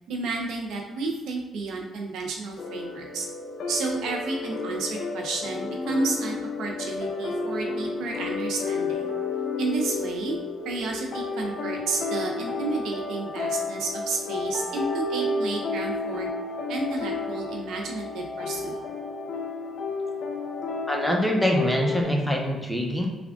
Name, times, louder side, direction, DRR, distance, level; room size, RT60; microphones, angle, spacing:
voice 1, 0.1-3.3 3.7-9.1 9.6-10.4 10.6-16.3 16.7-18.8, right 3 dB, 80° right, 1 dB, 0.6 m, -31 dB
sound 1, 2.6-22.0, left 3 dB, 65° left, 0.4 m, -31 dB
voice 2, 20.9-23.1, equal, 5° left, 0 dB, 0.7 m, -24 dB
3.4 x 2.3 x 3.5 m, 1.2 s
cardioid pair, 90°, 0 cm